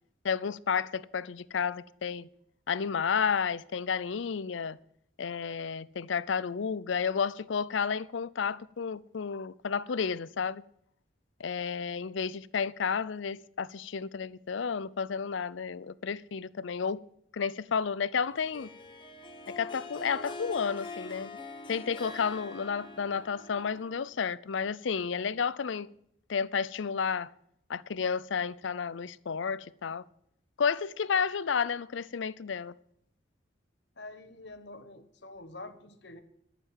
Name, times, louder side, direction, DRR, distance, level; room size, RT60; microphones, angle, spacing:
voice 1, 0.2-2.3 2.7-4.8 5.2-10.6 11.4-17.0 17.3-18.7 19.6-21.3 21.7-25.9 26.3-27.3 27.7-30.0 30.6-32.7, left 6 dB, 80° left, 0.5 m, -31 dB
Harp, 18.4-24.1, left 2 dB, 25° left, 1.2 m, -44 dB
voice 2, 33.9-36.2, left 2 dB, 65° left, 1.3 m, -46 dB
12.0 x 6.9 x 8.9 m
head